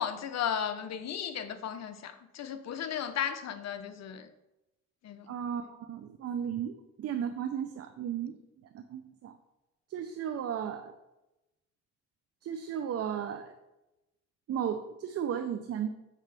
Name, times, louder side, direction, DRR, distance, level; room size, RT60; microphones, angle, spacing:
voice 1, 0.0-4.3 5.0-5.3, left 8 dB, 60° left, 10 dB, 0.7 m, -35 dB
voice 2, 5.3-8.4 8.7-9.3 9.9-10.9 12.4-13.5 14.5-15.9, right 8 dB, 55° right, 8 dB, 0.5 m, -35 dB
7.3 x 5.5 x 3.4 m, 0.98 s
cardioid pair, 90°, 30 cm